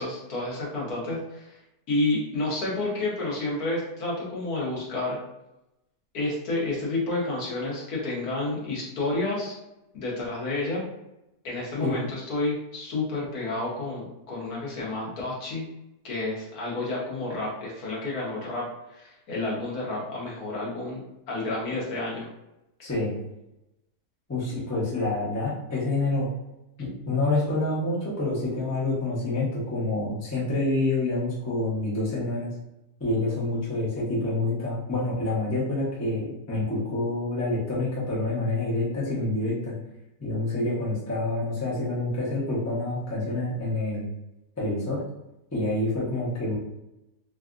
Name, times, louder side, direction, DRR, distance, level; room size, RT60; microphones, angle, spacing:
voice 1, 0.0-1.5 1.9-5.2 6.1-9.6 9.9-10.8 11.4-15.7 16.0-22.3, left 2 dB, 65° left, -5 dB, 1.4 m, -30 dB
voice 2, 22.8-23.2 24.3-26.3 26.8-32.5 33.0-39.8 40.2-44.1 44.6-45.0 45.5-46.5, left 2 dB, 20° left, -7 dB, 0.4 m, -27 dB
3.3 x 2.4 x 2.4 m, 0.92 s
omnidirectional pair, 1.8 m